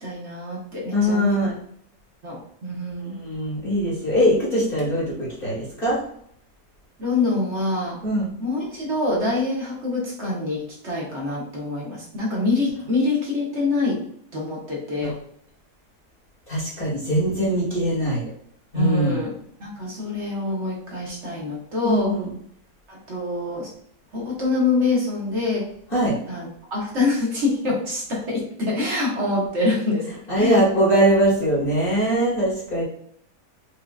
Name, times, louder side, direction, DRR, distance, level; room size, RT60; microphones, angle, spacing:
voice 1, 0.0-1.5 2.2-3.2 7.0-8.0 8.4-14.0 14.3-15.1 18.7-22.1 22.9-23.7 24.1-25.6 26.3-30.1 30.4-30.6, left 3 dB, 45° right, -4 dB, 1.4 m, -25 dB
voice 2, 0.9-1.5 3.0-6.0 8.0-8.3 15.0-15.1 16.5-18.2 18.7-19.2 21.8-22.3 25.9-26.2 30.3-32.8, equal, 35° left, -7 dB, 1.6 m, -21 dB
4.9 x 2.7 x 2.3 m, 0.67 s
omnidirectional pair, 1.8 m